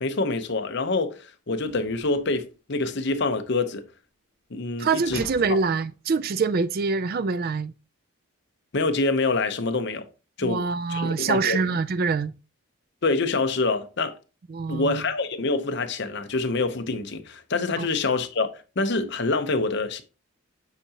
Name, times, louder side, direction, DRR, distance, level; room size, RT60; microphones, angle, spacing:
voice 1, 0.0-3.8 4.5-5.2 8.7-10.1 10.4-10.6 10.9-11.6 13.0-14.2 14.7-20.0, left 3 dB, 50° left, 0.7 m, -26 dB
sound 1, 1.6-2.6 5.0-6.1, left 1 dB, 20° left, 2.5 m, -45 dB
voice 2, 4.8-7.7 10.4-12.3 14.5-15.0 17.8-17.9, right 4 dB, 45° right, 0.4 m, -25 dB
8.2 x 4.8 x 2.8 m
head